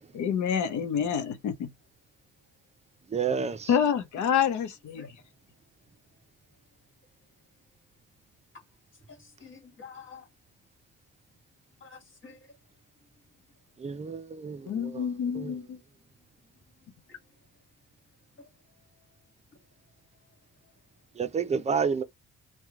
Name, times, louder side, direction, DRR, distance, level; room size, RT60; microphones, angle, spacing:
voice 1, 0.1-1.7 3.7-5.2 14.7-15.8, left 8 dB, 70° left, 0.8 m, -27 dB
voice 2, 3.1-3.7 13.8-15.1 15.3-15.5 21.2-22.0, right 6 dB, 20° right, 0.5 m, -30 dB
voice 3, 9.1-10.3 11.8-12.5 16.8-17.2 18.4-18.5, left 5 dB, 40° left, 1.6 m, -49 dB
3.0 x 2.3 x 3.6 m
cardioid pair, 90°, 30 cm